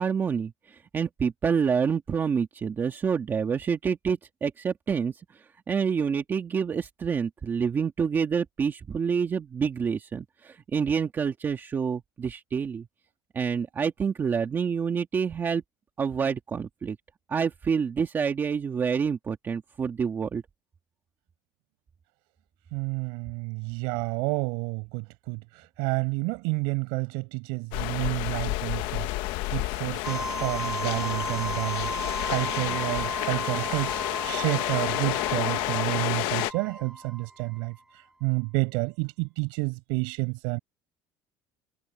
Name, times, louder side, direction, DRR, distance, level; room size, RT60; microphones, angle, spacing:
voice 1, 0.0-12.9 13.3-15.6 16.0-17.0 17.3-20.4, right 6 dB, 25° right, 1.9 m, -28 dB
voice 2, 22.7-29.1 29.5-40.6, right 32 dB, 85° right, 8.0 m, -30 dB
sound 1, 27.7-36.5, left 18 dB, 75° left, 1.2 m, -30 dB
sound 2, 30.0-37.8, right 1 dB, 5° right, 2.9 m, -36 dB
cardioid pair, 145°, 8 cm